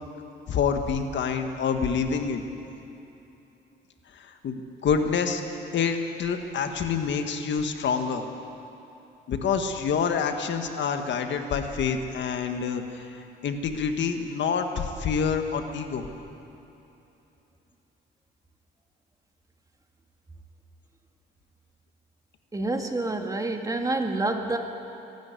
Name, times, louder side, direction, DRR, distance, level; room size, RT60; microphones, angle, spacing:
voice 1, 0.5-2.4 4.1-5.4 5.7-8.2 9.3-16.0, left 6 dB, 65° left, 6 dB, 1.7 m, -27 dB
voice 2, 22.5-24.6, right 2 dB, 15° right, 3 dB, 2.0 m, -27 dB
23.0 x 12.5 x 9.6 m, 2.9 s
cardioid pair, 90°, 20 cm